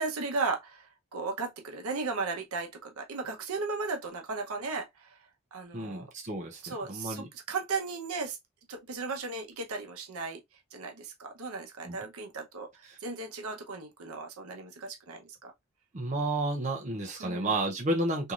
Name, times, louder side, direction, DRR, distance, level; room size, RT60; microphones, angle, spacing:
voice 1, 0.0-5.2 5.5-6.1 6.6-8.4 8.7-10.4 10.7-12.7 13.0-15.5 17.2-17.5, right 4 dB, 85° right, 0.8 m, -36 dB
voice 2, 5.7-7.3 11.8-12.0 12.9-13.0 15.9-18.3, right 2 dB, 35° right, 0.6 m, -31 dB
3.1 x 2.7 x 2.3 m
head